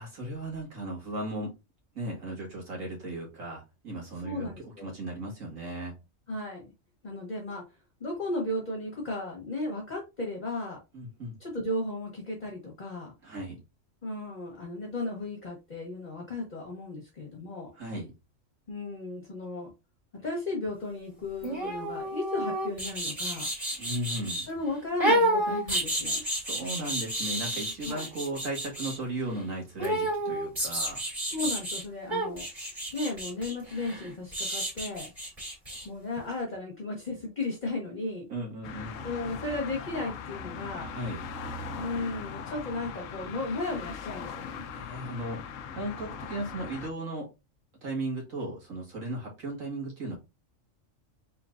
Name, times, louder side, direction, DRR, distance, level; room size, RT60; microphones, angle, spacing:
voice 1, 0.0-1.5 2.0-4.5 4.8-6.0 10.9-11.4 13.2-13.6 17.7-18.1 23.8-24.5 26.4-31.0 38.3-39.0 40.9-41.3 44.7-47.3 47.8-50.2, right 1 dB, 75° right, 2.2 m, -36 dB
voice 2, 4.1-4.9 6.3-6.7 7.0-7.6 8.0-10.8 11.4-13.1 14.0-17.7 18.7-19.7 20.1-23.5 24.5-26.2 27.8-28.1 31.2-32.5 32.9-35.1 35.8-38.3 39.0-40.9 41.7-44.6, left 2 dB, 35° left, 1.3 m, -35 dB
sound 1, 21.4-24.5 25.0-29.0 29.8-31.8 32.1-35.8 36.2-36.3, right 1 dB, 25° right, 2.4 m, -30 dB
sound 2, 38.6-46.9, left 6 dB, 80° left, 1.0 m, -40 dB
4.4 x 3.8 x 2.5 m
omnidirectional pair, 1.4 m